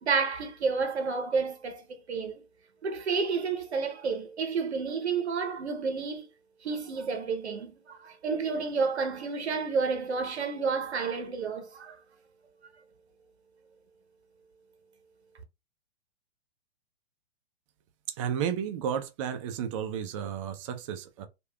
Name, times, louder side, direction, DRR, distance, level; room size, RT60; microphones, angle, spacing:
voice 1, 0.0-2.4 2.8-6.3 6.6-12.0, right 5 dB, 80° right, 0.8 m, -30 dB
voice 2, 18.1-21.3, right 8 dB, 30° right, 0.5 m, -32 dB
3.2 x 2.4 x 2.2 m
hypercardioid pair, 120°, 33 cm